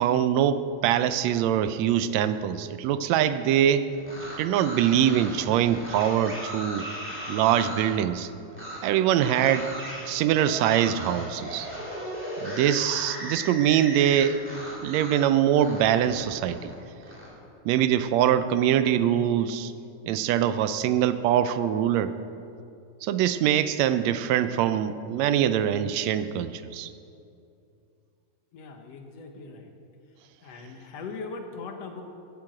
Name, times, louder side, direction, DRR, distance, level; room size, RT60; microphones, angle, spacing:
voice 1, 0.0-3.9 4.4-6.9 7.3-8.3 8.8-9.7 10.1-11.7 12.4-14.4 14.8-16.7 17.6-19.7 20.1-22.2 23.0-26.9, right 10 dB, 80° right, 12 dB, 1.7 m, -23 dB
sound 1, 3.9-7.9 8.5-8.8 9.2-15.2 15.5-17.3, equal, 5° right, 3.0 m, -37 dB
voice 2, 28.5-29.7 30.4-32.0, left 4 dB, 65° left, 5 dB, 2.0 m, -40 dB
14.0 x 8.5 x 7.7 m, 2.5 s
omnidirectional pair, 3.4 m